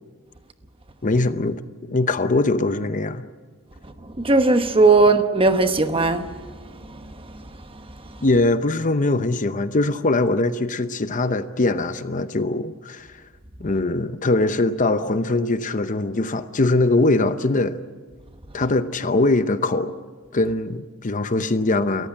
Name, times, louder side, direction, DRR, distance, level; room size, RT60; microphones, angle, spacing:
voice 1, 1.0-3.3 8.2-13.1 13.6-17.8 18.5-19.9 20.3-22.1, left 2 dB, 40° left, 0.8 m, -22 dB
voice 2, 4.0-8.2, right 3 dB, 25° right, 1.1 m, -20 dB
28.5 x 14.5 x 8.6 m
head